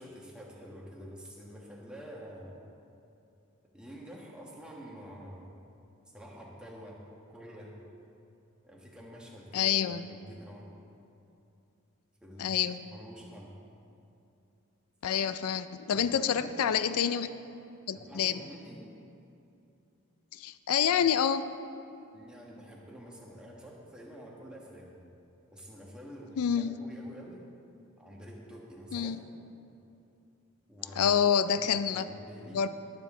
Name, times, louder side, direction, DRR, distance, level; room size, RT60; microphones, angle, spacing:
voice 1, 0.0-2.6 3.7-5.5 6.1-7.0 7.3-7.8 8.6-10.7 12.2-13.5 15.9-16.8 17.9-18.8 22.1-24.9 25.5-27.4 28.0-29.2 30.7-31.2 31.6-32.6, equal, 5° right, -3 dB, 1.4 m, -48 dB
voice 2, 9.5-10.1 12.4-12.8 15.0-17.3 17.9-18.4 20.3-21.5 26.4-26.8 28.9-29.2 31.0-32.1 32.5-32.7, left 8 dB, 80° left, 12 dB, 0.4 m, -27 dB
19.0 x 7.5 x 3.8 m, 2.7 s
head